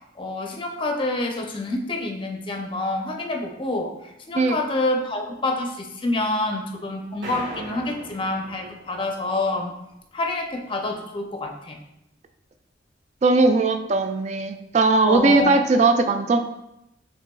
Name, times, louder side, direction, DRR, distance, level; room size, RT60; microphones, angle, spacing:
voice 1, 0.2-3.9 4.3-9.7 10.1-11.8 15.0-15.7, left 2 dB, 30° left, 2 dB, 0.5 m, -27 dB
sound 1, 7.2-9.6, right 1 dB, 80° right, 1.5 m, -39 dB
voice 2, 13.2-16.4, right 3 dB, 40° right, 7 dB, 0.3 m, -19 dB
5.9 x 3.3 x 2.2 m, 0.84 s
head